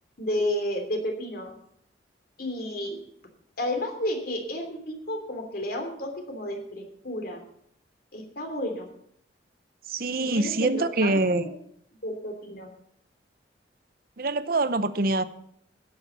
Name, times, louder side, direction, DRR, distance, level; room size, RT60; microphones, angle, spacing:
voice 1, 0.2-1.5 2.4-3.0 3.6-7.4 8.1-8.9 10.2-11.5 12.0-12.7, left 1 dB, 55° left, 4 dB, 3.1 m, -32 dB
voice 2, 9.9-11.4 14.2-15.2, right 2 dB, 55° right, 13 dB, 0.8 m, -24 dB
12.5 x 8.8 x 7.2 m, 0.69 s
head